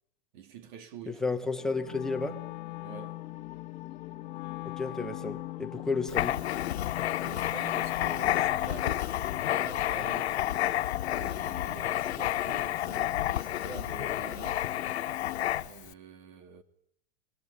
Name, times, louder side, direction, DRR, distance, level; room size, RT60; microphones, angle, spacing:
voice 1, 0.3-1.4 2.8-3.2 7.2-10.4 11.1-14.7 15.6-16.6, right 6 dB, 50° right, 2.8 m, -47 dB
voice 2, 1.1-2.4 4.6-6.4, left 3 dB, ahead, 1.1 m, -32 dB
sound 1, 1.6-15.5, left 15 dB, 20° left, 1.8 m, -45 dB
Wind instrument woodwind instrument, 1.9-8.6, left 19 dB, 45° left, 1.1 m, -41 dB
Writing, 6.1-15.9, left 13 dB, 90° left, 1.6 m, -30 dB
24.0 x 22.0 x 10.0 m
supercardioid pair, 175°, 32 cm